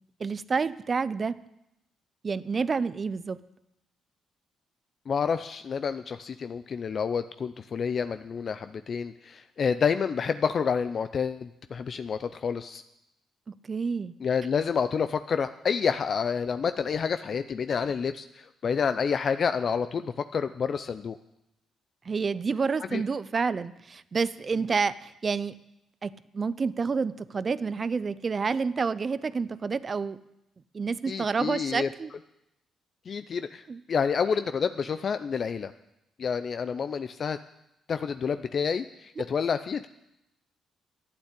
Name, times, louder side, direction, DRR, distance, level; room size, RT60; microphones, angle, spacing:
voice 1, 0.2-1.4 2.2-3.4 13.6-14.1 22.1-25.5 26.0-30.2 30.7-32.1 33.7-33.8, right 5 dB, 35° right, 16 dB, 0.5 m, -29 dB
voice 2, 5.1-12.8 14.2-21.2 22.9-23.0 31.1-31.9 33.1-35.7 36.2-37.4 37.9-39.9, left 6 dB, 50° left, 10 dB, 0.5 m, -29 dB
11.5 x 8.8 x 8.2 m, 0.87 s
cardioid pair, 90°, 0 cm